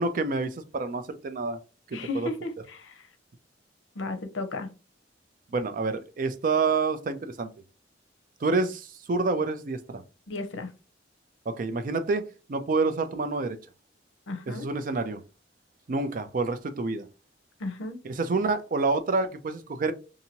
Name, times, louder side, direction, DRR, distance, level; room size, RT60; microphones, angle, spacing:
voice 1, 0.0-1.6 1.9-2.3 5.5-7.5 8.4-10.0 11.5-12.2 12.5-13.6 14.5-15.2 15.9-17.1 18.0-19.9, right 3 dB, 45° right, 0.4 m, -28 dB
voice 2, 1.9-3.1 3.9-4.7 10.3-10.7 14.3-14.7 17.6-18.0, left 2 dB, 85° left, 0.6 m, -34 dB
2.8 x 2.6 x 2.8 m
head